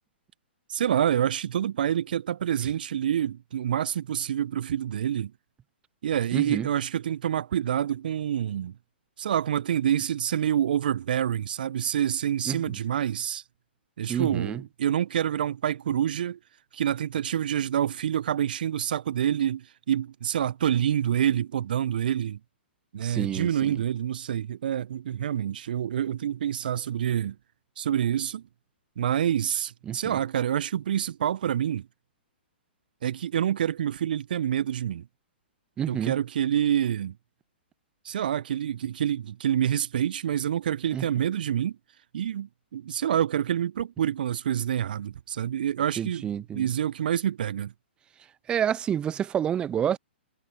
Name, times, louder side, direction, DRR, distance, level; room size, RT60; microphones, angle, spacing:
voice 1, 0.7-5.3 6.0-8.7 9.2-13.4 14.0-16.4 16.7-22.4 22.9-27.4 27.8-28.4 29.0-31.9 33.0-35.1 35.9-37.1 38.0-41.8 42.1-46.3 46.5-47.7, right 10 dB, 55° right, 1.2 m, -27 dB
voice 2, 6.3-6.7 12.5-12.6 14.1-14.6 23.0-23.5 29.9-30.2 35.8-36.1 40.9-41.0 46.0-46.7 48.5-50.0, right 9 dB, 15° right, 0.5 m, -28 dB
figure-of-eight pair, 115°, 6 cm